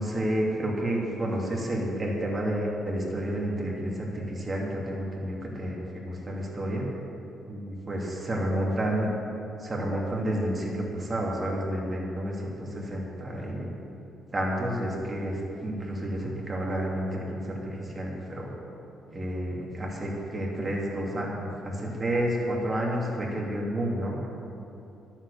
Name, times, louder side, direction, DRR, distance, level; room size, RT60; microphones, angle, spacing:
voice 1, 0.0-6.8 7.5-9.1 9.6-13.7 14.3-18.5 19.1-24.2, right 1 dB, 30° right, -3 dB, 2.6 m, -30 dB
11.5 x 7.4 x 6.9 m, 3.0 s
cardioid pair, 90°, 0 cm